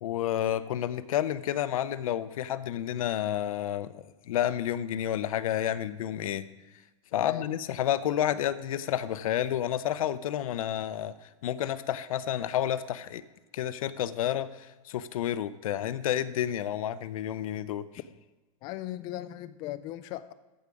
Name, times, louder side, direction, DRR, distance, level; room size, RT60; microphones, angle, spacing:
voice 1, 0.0-6.4 7.1-11.1 11.4-13.2 13.5-17.9, left 11 dB, 85° left, 14 dB, 0.6 m, -30 dB
voice 2, 7.1-7.5 18.6-20.3, left 14 dB, 25° left, 13 dB, 0.3 m, -38 dB
14.0 x 4.8 x 5.2 m, 1.1 s
supercardioid pair, 165°, 17 cm